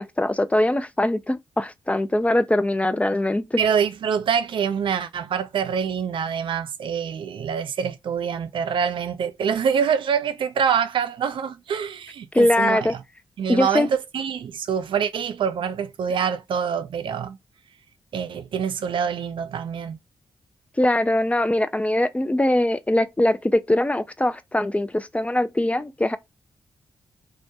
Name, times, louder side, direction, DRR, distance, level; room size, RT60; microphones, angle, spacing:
voice 1, 0.0-3.6 12.3-12.9 13.5-13.9 20.8-26.2, left 1 dB, 15° left, 0.3 m, -22 dB
voice 2, 3.6-13.0 13.4-13.9 14.1-17.4 18.1-20.0, right 7 dB, 65° right, 0.3 m, -25 dB
2.1 x 2.1 x 2.7 m
supercardioid pair, 50°, 9 cm